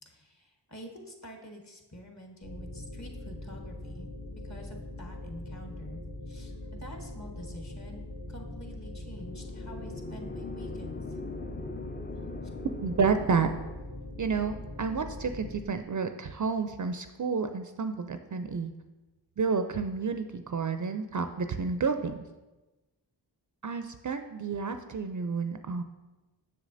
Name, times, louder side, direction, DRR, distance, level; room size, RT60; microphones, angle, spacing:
voice 1, 0.0-4.1 4.4-11.2, equal, 40° left, 2 dB, 1.2 m, -47 dB
sound 1, 2.4-15.6, left 1 dB, 60° left, 1.0 m, -42 dB
sound 2, 9.1-14.0, left 3 dB, 20° left, 0.5 m, -42 dB
voice 2, 12.8-13.5 14.2-18.7 19.4-22.2 23.6-25.8, right 5 dB, 45° right, 8 dB, 0.4 m, -30 dB
7.0 x 6.4 x 2.6 m, 1.1 s
cardioid pair, 40°, 45 cm